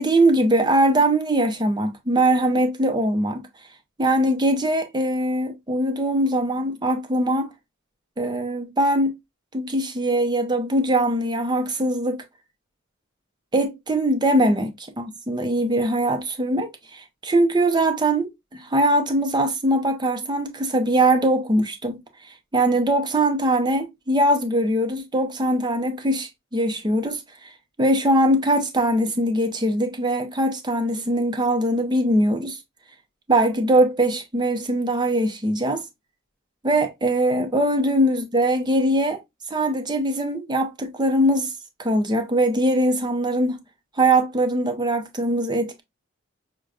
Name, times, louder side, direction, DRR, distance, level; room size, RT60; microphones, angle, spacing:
voice 1, 0.0-3.5 4.0-7.5 8.2-9.1 9.5-12.2 13.5-22.0 22.5-27.5 27.8-32.6 33.3-35.8 36.6-39.2 39.5-41.5 41.8-43.6 44.0-45.8, right 1 dB, 20° right, 0.6 m, -21 dB
6.1 x 2.2 x 2.4 m
head